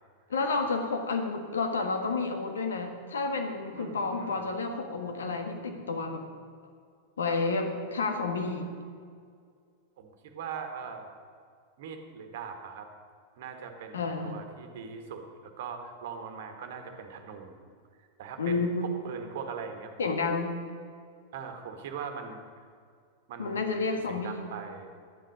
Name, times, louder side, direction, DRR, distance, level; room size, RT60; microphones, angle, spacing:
voice 1, 0.3-6.2 7.2-8.7 13.9-14.4 18.4-18.9 20.0-20.6 23.4-24.4, left 3 dB, 70° left, 4 dB, 1.5 m, -30 dB
voice 2, 3.8-4.4 10.0-11.1 11.8-12.9 13.3-17.7 18.0-19.9 21.3-22.6 23.3-24.9, right 6 dB, 55° right, 5 dB, 1.4 m, -41 dB
11.5 x 10.0 x 5.3 m, 2.1 s
figure-of-eight pair, 90°, 0 cm